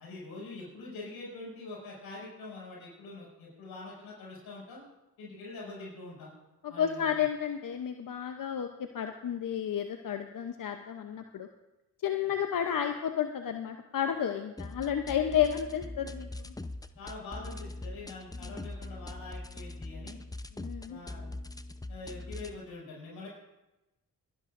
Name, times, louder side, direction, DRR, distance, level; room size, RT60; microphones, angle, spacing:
voice 1, 0.0-4.8 5.2-6.3 6.7-7.2 17.0-20.2 20.9-21.4 21.9-23.3, left 3 dB, 90° left, -5 dB, 6.0 m, -44 dB
voice 2, 6.6-8.7 8.9-11.5 12.0-16.5 20.6-21.0, left 9 dB, 60° left, 6 dB, 0.8 m, -31 dB
sound 1, 14.6-22.6, left 2 dB, 10° left, 0.7 m, -42 dB
24.5 x 11.0 x 2.6 m, 0.98 s
supercardioid pair, 45°, 37 cm